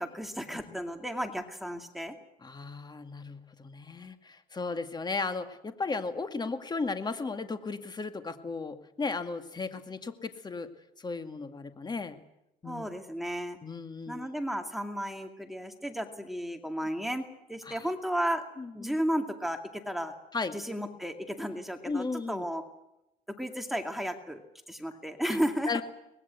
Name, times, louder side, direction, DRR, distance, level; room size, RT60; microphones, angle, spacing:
voice 1, 0.0-2.2 12.6-13.6 14.1-18.4 18.7-20.1 20.5-22.6 23.4-24.4 24.7-25.8, equal, ahead, 6 dB, 2.4 m, -33 dB
voice 2, 2.4-10.7 11.0-12.2 12.6-12.9 13.6-14.3 17.6-17.9 18.6-19.0 20.3-20.6 21.8-22.5 25.3-25.4 25.7-25.8, left 4 dB, 25° left, 9 dB, 2.1 m, -35 dB
24.0 x 20.0 x 8.3 m, 0.88 s
cardioid pair, 110°, 17 cm